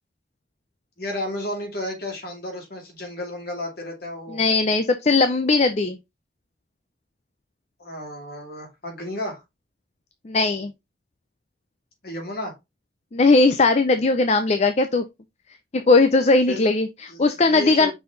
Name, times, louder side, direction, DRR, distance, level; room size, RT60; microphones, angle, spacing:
voice 1, 1.0-4.5 7.8-9.4 12.0-12.5 16.5-16.7 17.1-17.9, left 1 dB, 55° left, 2.5 m, -32 dB
voice 2, 4.3-6.0 10.2-10.7 13.1-15.0 15.7-17.9, left 3 dB, 35° left, 0.5 m, -19 dB
5.6 x 4.3 x 3.9 m
head